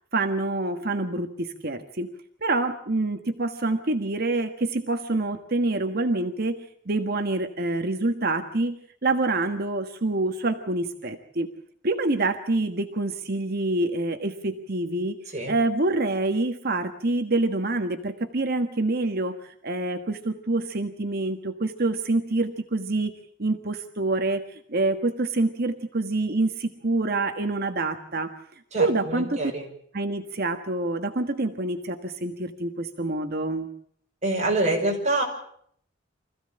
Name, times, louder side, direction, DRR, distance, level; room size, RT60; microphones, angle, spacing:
voice 1, 0.1-2.1 2.4-6.6 6.9-8.7 9.0-11.5 11.8-15.2 15.5-23.1 23.4-28.3 28.8-29.5 29.9-33.7, right 2 dB, 55° right, 6 dB, 1.4 m, -26 dB
voice 2, 28.7-29.6 34.2-35.2, right 2 dB, 35° right, 1 dB, 5.7 m, -25 dB
25.0 x 15.5 x 8.8 m, 0.66 s
head